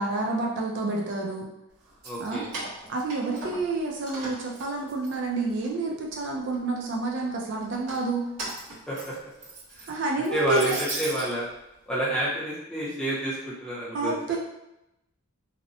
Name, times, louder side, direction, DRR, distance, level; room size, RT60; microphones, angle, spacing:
voice 1, 0.0-1.4 2.2-2.5 2.9-8.2 9.9-10.7 13.9-14.4, right 3 dB, 50° right, -1 dB, 0.3 m, -29 dB
Keys jangling, 1.9-3.8 4.1-5.7 6.1-6.8 7.6-11.3, right 2 dB, 85° right, 1.0 m, -38 dB
voice 2, 2.0-2.5 8.9-9.1 9.8-11.5 11.9-14.4, right 1 dB, 5° left, -7 dB, 0.5 m, -29 dB
2.7 x 2.0 x 2.6 m, 0.88 s
head